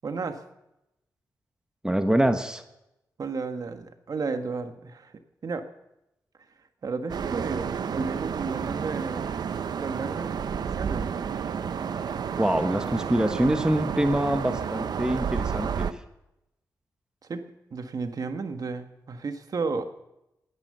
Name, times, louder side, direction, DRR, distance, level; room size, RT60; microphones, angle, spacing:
voice 1, 0.0-0.4 3.2-5.1 5.4-5.7 6.8-9.3 9.7-11.1 17.2-17.4 17.7-19.9, right 4 dB, 60° right, 8 dB, 1.6 m, -33 dB
voice 2, 1.8-2.6 12.4-16.0, right 1 dB, 10° right, 8 dB, 1.3 m, -25 dB
sound 1, 7.1-15.9, right 7 dB, 75° right, 0.8 m, -31 dB
18.5 x 10.5 x 6.7 m, 0.87 s
cardioid pair, 70°, 7 cm